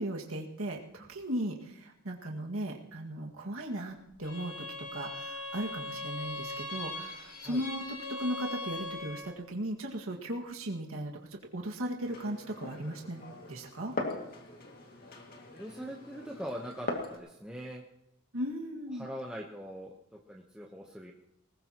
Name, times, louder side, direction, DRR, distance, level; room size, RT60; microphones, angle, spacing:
voice 1, 0.0-7.8 8.1-13.2 13.5-13.9 18.3-19.1, right 1 dB, 85° right, 0 dB, 2.0 m, -37 dB
Bowed string instrument, 4.2-9.4, left 2 dB, 80° left, 3.4 m, -40 dB
Glass, 12.0-17.2, left 2 dB, 45° left, 2.3 m, -41 dB
voice 2, 15.5-17.8 18.9-21.1, equal, 5° right, -2 dB, 1.0 m, -42 dB
20.0 x 20.0 x 3.0 m, 0.87 s
head